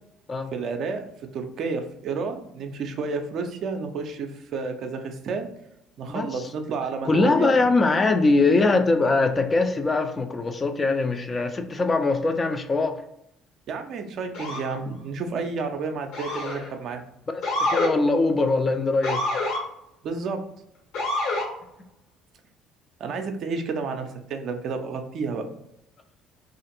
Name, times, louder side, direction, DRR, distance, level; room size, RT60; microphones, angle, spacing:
voice 1, 0.5-5.5 6.0-7.7 13.7-17.0 20.0-20.4 23.0-25.5, right 4 dB, 55° right, 5 dB, 0.4 m, -31 dB
voice 2, 7.0-13.0 17.3-19.3, left 3 dB, 30° left, 7 dB, 0.4 m, -22 dB
Motor vehicle (road) / Siren, 14.3-14.7 16.1-16.7 17.4-17.9 19.0-19.6 20.9-21.5, left 2 dB, 70° left, 1.3 m, -26 dB
2.5 x 2.4 x 2.8 m, 0.78 s
hypercardioid pair, 55°, 0 cm